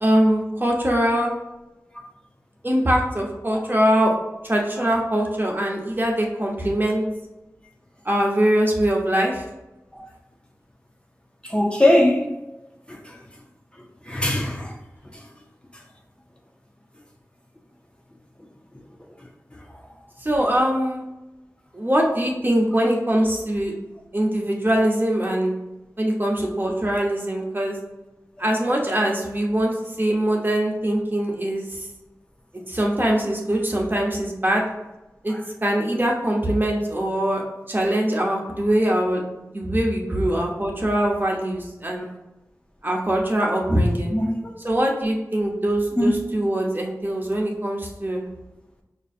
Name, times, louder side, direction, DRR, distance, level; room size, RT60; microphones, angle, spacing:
voice 1, 0.0-1.3 2.6-4.1 4.4-7.0 8.0-9.4 20.2-21.0 21.7-23.7 24.1-25.5 26.0-27.8 28.4-31.9 32.7-34.6 35.2-35.3 35.6-37.4 37.7-42.0 42.8-44.2 44.6-48.2, right 1 dB, 35° right, 0.8 m, -22 dB
voice 2, 11.4-12.3 14.1-14.7 44.1-44.5 46.0-46.2, left 1 dB, 15° left, 0.5 m, -20 dB
5.3 x 2.6 x 2.4 m
wide cardioid pair, 45°, 6 cm